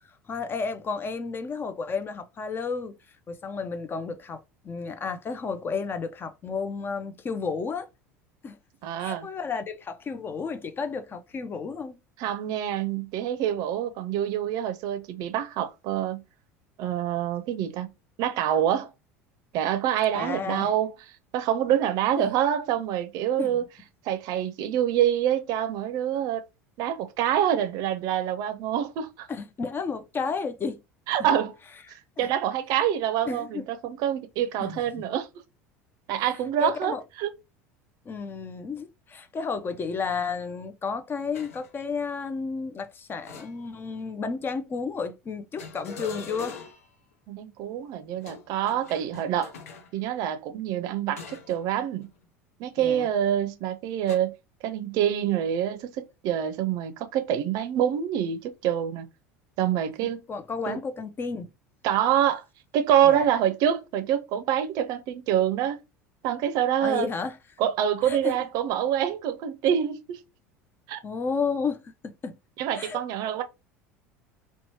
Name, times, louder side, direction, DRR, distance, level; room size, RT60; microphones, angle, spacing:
voice 1, 0.3-3.0 3.3-7.9 8.4-8.6 9.0-12.0 20.1-20.7 22.2-22.4 23.4-23.6 29.3-30.8 32.2-32.3 33.3-33.7 34.6-35.0 36.6-37.0 38.1-46.6 52.8-53.1 60.3-61.5 63.0-63.3 66.8-67.4 68.1-68.4 71.0-72.4 72.8-73.0, left 5 dB, 25° left, 0.4 m, -32 dB
voice 2, 8.8-9.3 12.2-16.2 16.8-17.9 18.2-18.9 19.5-20.9 21.3-23.6 24.1-26.4 26.8-29.3 31.1-31.5 32.2-35.3 36.1-37.3 47.3-49.5 49.9-52.1 52.6-54.3 54.6-59.1 59.6-60.3 60.7-60.8 61.8-62.4 62.7-65.8 66.2-67.1 67.6-70.2 70.9-71.0 72.6-73.4, right 10 dB, 55° right, 0.5 m, -26 dB
sound 1, 41.3-41.7 43.2-44.0 45.6-46.9 48.2-49.9 51.2-51.6 52.0-52.2 54.1-54.2, left 4 dB, 80° left, 0.5 m, -42 dB
2.9 x 2.2 x 2.8 m
hypercardioid pair, 75°, 8 cm